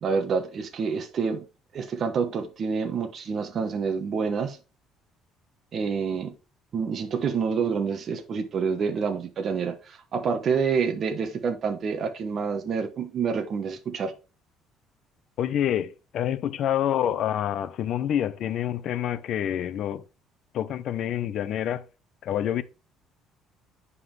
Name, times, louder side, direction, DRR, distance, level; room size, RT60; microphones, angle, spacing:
voice 1, 0.0-1.5 1.7-4.6 5.7-6.3 6.7-14.1, right 5 dB, 40° right, 1.1 m, -27 dB
voice 2, 15.4-20.0 20.5-21.8 22.2-22.6, left 10 dB, 55° left, 0.7 m, -27 dB
9.6 x 5.5 x 3.3 m
cardioid pair, 145°, 0 cm